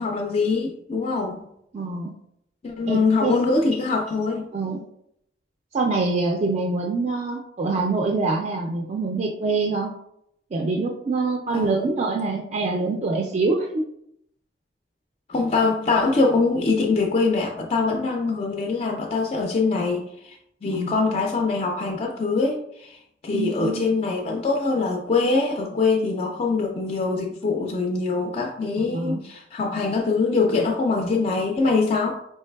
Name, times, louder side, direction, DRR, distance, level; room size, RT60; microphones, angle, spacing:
voice 1, 0.0-1.4 2.6-4.5 11.5-11.9 15.3-32.2, left 3 dB, 35° left, 1 dB, 0.3 m, -23 dB
voice 2, 1.7-2.1 2.9-3.3 4.5-4.8 5.7-9.9 10.5-13.8 20.7-21.2 23.3-23.8 28.8-29.2, right 3 dB, 40° right, 0 dB, 0.4 m, -25 dB
4.4 x 3.1 x 2.2 m, 0.76 s
head